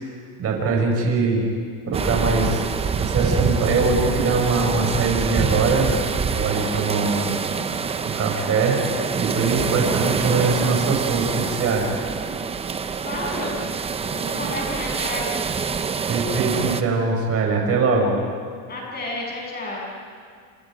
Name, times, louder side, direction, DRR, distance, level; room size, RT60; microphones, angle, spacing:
voice 1, 0.4-1.5 1.9-2.6 3.0-5.9 6.2-7.4 7.6-8.8 9.2-11.9 16.1-18.2, right 4 dB, 30° right, 1 dB, 5.7 m, -22 dB
sound 1, 1.9-16.8, right 5 dB, 15° right, 0.6 m, -26 dB
voice 2, 13.0-13.6 14.1-15.4 18.7-19.9, left 1 dB, 20° left, -3 dB, 8.0 m, -31 dB
29.5 x 26.5 x 5.1 m, 2.1 s
cardioid pair, 155°, 46 cm